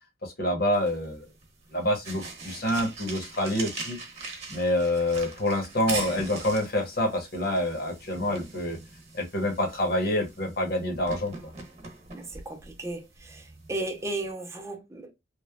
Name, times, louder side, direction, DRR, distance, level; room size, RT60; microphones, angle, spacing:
voice 1, 0.2-1.2 1.7-4.0 4.5-8.8 9.1-11.5, left 1 dB, 55° left, 0.9 m, -27 dB
sound 1, 0.7-14.3, right 3 dB, 35° right, 1.0 m, -42 dB
voice 2, 12.1-15.1, right 2 dB, 15° right, 0.5 m, -35 dB
3.1 x 2.1 x 2.2 m
head